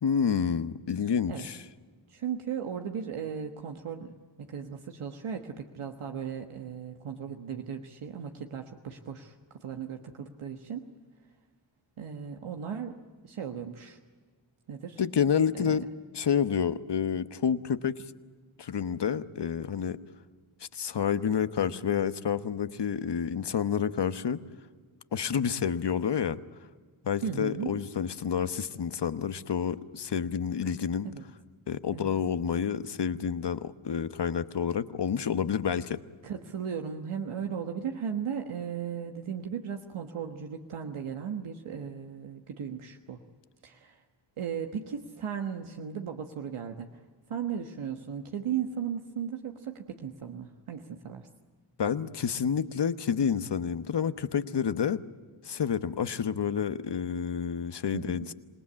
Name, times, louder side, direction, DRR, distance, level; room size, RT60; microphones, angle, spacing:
voice 1, 0.0-1.6 15.0-15.8 16.1-18.0 18.6-20.0 20.7-24.4 25.1-26.4 27.0-31.1 31.7-36.0 51.8-55.0 55.4-58.3, left 7 dB, 55° left, 12 dB, 1.1 m, -29 dB
voice 2, 2.1-10.9 12.0-13.0 13.2-14.0 14.7-15.0 15.6-15.8 27.2-27.7 31.0-31.2 31.9-32.1 36.2-43.2 43.6-44.0 44.4-47.0 47.3-51.3 57.9-58.3, right 7 dB, 85° right, 4 dB, 1.4 m, -36 dB
27.0 x 18.5 x 8.6 m, 1.5 s
cardioid pair, 60°, 49 cm